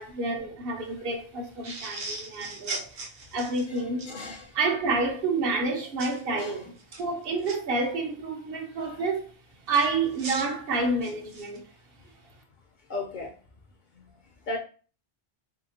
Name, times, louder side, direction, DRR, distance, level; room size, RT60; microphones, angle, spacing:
voice 1, 0.0-2.9 3.3-4.1 4.5-6.7 7.0-9.3 9.7-11.6, right 3 dB, 65° right, 0.9 m, -29 dB
sound 1, 1.6-4.1 6.0-6.2 6.8-7.6 9.7-11.6, right 3 dB, 90° right, 1.0 m, -38 dB
voice 2, 4.1-4.5 6.3-6.6 8.8-9.0 12.9-13.4 14.5-14.6, left 3 dB, 55° left, 0.6 m, -35 dB
2.9 x 2.8 x 2.7 m
omnidirectional pair, 1.1 m